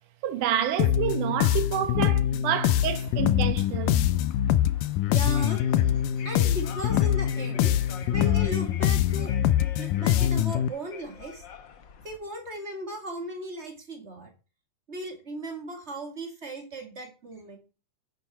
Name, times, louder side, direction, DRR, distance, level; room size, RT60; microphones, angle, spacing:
voice 1, 0.2-4.0, right 10 dB, 75° right, 2.6 m, -28 dB
sound 1, 0.8-10.7, left 11 dB, 85° left, 2.2 m, -24 dB
sound 2, 2.8-12.2, left 7 dB, 65° left, 1.1 m, -47 dB
voice 2, 5.1-7.8 8.1-9.3 9.8-11.4 12.0-14.3 14.9-17.6, right 1 dB, 25° right, 2.1 m, -37 dB
10.0 x 9.3 x 4.4 m
omnidirectional pair, 3.8 m